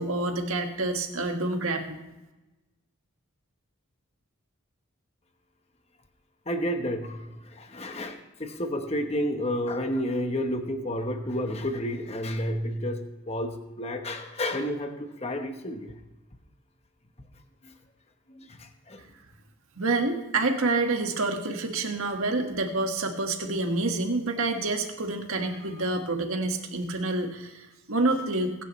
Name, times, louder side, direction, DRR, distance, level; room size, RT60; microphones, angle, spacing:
voice 1, 0.0-2.0 19.8-27.6 27.9-28.5, right 2 dB, 75° right, 4 dB, 1.7 m, -28 dB
voice 2, 6.5-13.0 13.3-15.9 17.6-17.7 18.3-19.0, equal, 30° left, 6 dB, 1.1 m, -31 dB
21.5 x 10.0 x 3.2 m, 1.0 s
head